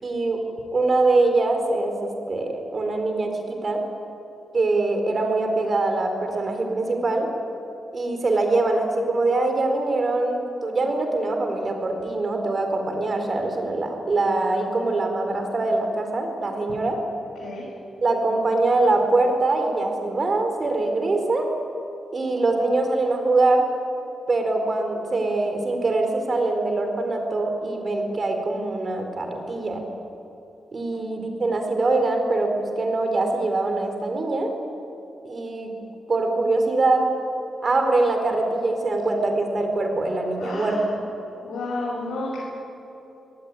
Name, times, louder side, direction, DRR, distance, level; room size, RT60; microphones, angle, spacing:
voice 1, 0.0-0.4 0.7-3.8 4.5-7.3 7.9-17.0 18.0-21.5 22.1-23.7 24.3-29.8 30.7-34.5 35.2-35.7 36.1-37.1 37.6-40.8, right 2 dB, 40° right, 5 dB, 4.3 m, -23 dB
voice 2, 40.4-40.9 41.4-42.4, left 2 dB, 90° left, -4 dB, 6.4 m, -31 dB
25.5 x 19.0 x 9.8 m, 2.9 s
wide cardioid pair, 125°, 0 cm